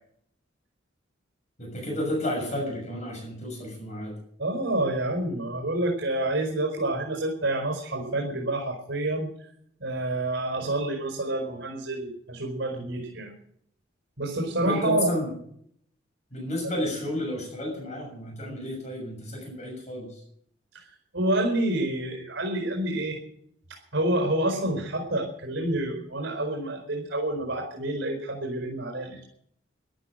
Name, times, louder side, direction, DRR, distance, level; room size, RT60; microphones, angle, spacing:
voice 1, 1.6-4.2 14.6-15.3 16.3-20.2, left 1 dB, 40° left, 1 dB, 6.6 m, -31 dB
voice 2, 4.4-9.3 9.8-13.3 14.2-15.1 20.7-20.9 21.1-23.2 23.9-29.2, right 1 dB, 70° right, 1 dB, 4.6 m, -28 dB
14.0 x 12.0 x 7.7 m, 0.67 s
head